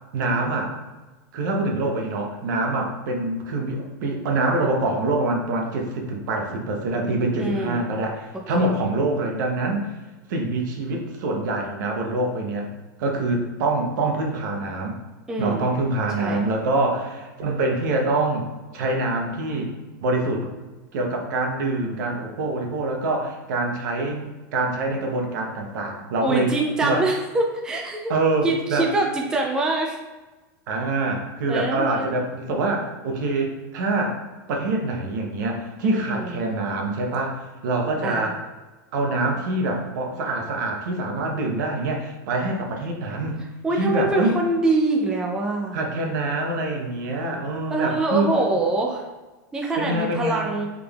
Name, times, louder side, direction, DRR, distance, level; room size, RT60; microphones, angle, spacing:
voice 1, 0.1-0.7 1.3-9.9 10.3-12.7 13.0-15.0 15.4-18.5 18.7-19.7 20.0-20.5 20.9-26.5 26.8-27.0 28.1-28.9 30.7-34.2 34.5-38.4 38.9-43.4 43.8-44.4 45.7-48.4 49.8-50.5, right 2 dB, 70° right, 2 dB, 0.7 m, -25 dB
voice 2, 7.4-7.8 8.3-8.7 15.3-15.6 16.2-16.4 26.2-28.1 28.4-30.0 31.5-32.1 35.8-36.4 38.0-38.3 43.6-45.8 47.7-49.0 49.5-50.7, right 2 dB, 5° right, 0 dB, 0.3 m, -24 dB
3.7 x 3.4 x 2.3 m, 1.2 s
supercardioid pair, 150°, 10 cm